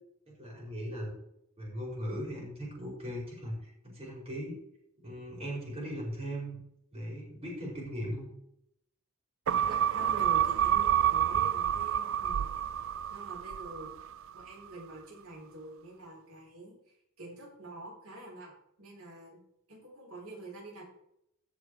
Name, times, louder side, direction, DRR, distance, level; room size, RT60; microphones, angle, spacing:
voice 1, 0.3-1.1 1.6-4.5 5.0-6.6 6.9-8.3, equal, 30° right, -4 dB, 4.9 m, -38 dB
sound 1, 9.5-14.1 14.5-14.6, right 10 dB, 65° right, 0.4 m, -28 dB
voice 2, 9.7-12.6 13.1-13.9 14.3-18.5 18.8-19.4 19.7-20.8, right 1 dB, 90° right, -2 dB, 4.3 m, -46 dB
15.5 x 6.3 x 4.7 m, 0.77 s
head